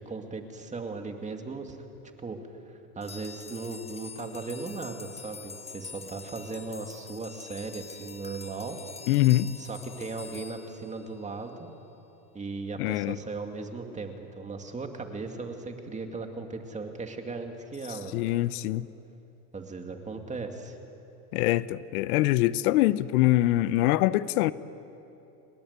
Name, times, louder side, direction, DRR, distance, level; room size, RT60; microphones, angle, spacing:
voice 1, 0.0-1.8 2.2-2.4 2.7-8.8 9.6-11.7 12.3-18.3 19.5-20.8, right 3 dB, 15° right, 2.3 m, -37 dB
sound 1, 3.0-11.5, left 5 dB, 15° left, 0.9 m, -46 dB
voice 2, 9.1-9.5 12.8-13.2 18.1-18.9 21.3-24.5, left 16 dB, 80° left, 0.9 m, -24 dB
29.5 x 21.0 x 8.3 m
supercardioid pair, 130°, 44 cm